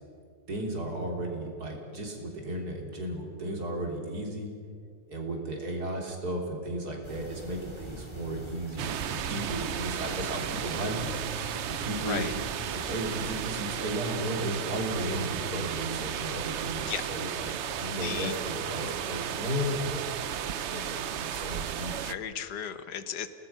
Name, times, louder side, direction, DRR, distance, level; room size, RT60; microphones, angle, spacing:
voice 1, 0.5-4.5 5.1-11.1 11.8-12.3 12.7-20.1 20.5-22.0, right 1 dB, 55° right, 1 dB, 4.0 m, -34 dB
sound 1, 7.0-13.5, equal, 15° right, 3.4 m, -44 dB
sound 2, 8.8-22.1, right 9 dB, 75° right, 0.6 m, -34 dB
voice 2, 17.9-18.4 22.0-23.3, left 8 dB, 65° left, 11 dB, 1.6 m, -35 dB
29.5 x 19.0 x 5.7 m, 2.3 s
omnidirectional pair, 2.0 m